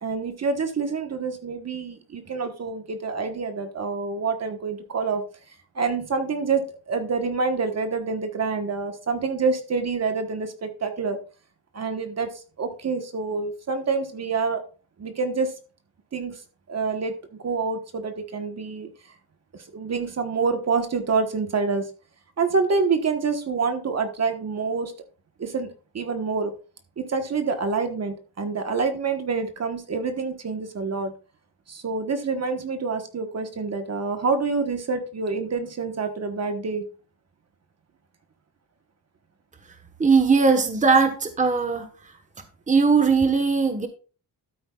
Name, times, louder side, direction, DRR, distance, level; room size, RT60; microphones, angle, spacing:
voice 1, 0.0-5.2 5.7-11.2 11.7-12.3 12.6-14.6 15.0-15.5 16.1-16.4 16.7-18.9 19.5-21.9 22.4-24.9 25.4-25.7 25.9-26.5 27.0-31.1 31.7-36.8, right 4 dB, 40° right, 7 dB, 1.3 m, -27 dB
voice 2, 40.0-41.9 42.7-43.9, right 4 dB, 20° right, 7 dB, 1.2 m, -19 dB
13.0 x 8.8 x 2.4 m, 0.35 s
wide cardioid pair, 140°, 39 cm